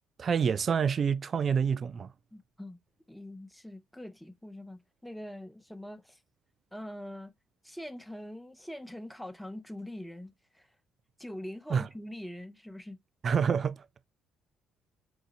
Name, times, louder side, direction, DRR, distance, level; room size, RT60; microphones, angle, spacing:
voice 1, 0.2-2.1 11.7-11.9 13.2-13.8, right 6 dB, 45° right, 0.3 m, -27 dB
voice 2, 2.3-2.8 3.1-6.2 6.7-7.3 7.6-10.7 11.2-13.0, left 1 dB, 5° left, 0.6 m, -43 dB
4.8 x 2.7 x 2.7 m
hypercardioid pair, 55°, 0 cm